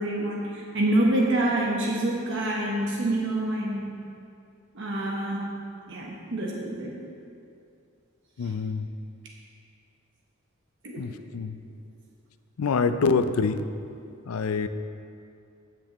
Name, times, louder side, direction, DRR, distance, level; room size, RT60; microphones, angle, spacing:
voice 1, 0.0-3.9 4.7-5.5 5.9-7.0 8.4-8.5 10.8-11.0, right 1 dB, 60° right, -2 dB, 1.0 m, -27 dB
voice 2, 8.4-8.9 11.0-11.6 12.6-13.6 14.3-14.7, left 5 dB, 85° left, 11 dB, 0.5 m, -25 dB
16.5 x 6.2 x 3.0 m, 2.5 s
head